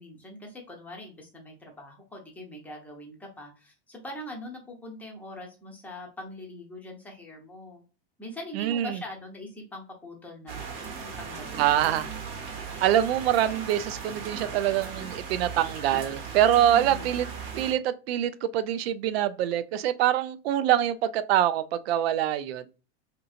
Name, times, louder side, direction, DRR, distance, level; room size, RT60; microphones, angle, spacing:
voice 1, 0.0-7.8 8.2-11.7 16.7-17.1, left 1 dB, 5° left, 0.7 m, -42 dB
voice 2, 8.5-9.0 11.6-12.1 12.8-17.3 17.6-22.6, right 11 dB, 80° right, 0.5 m, -25 dB
sound 1, 10.5-17.7, right 6 dB, 40° right, 0.8 m, -38 dB
2.9 x 2.6 x 2.4 m
supercardioid pair, 150°, 30 cm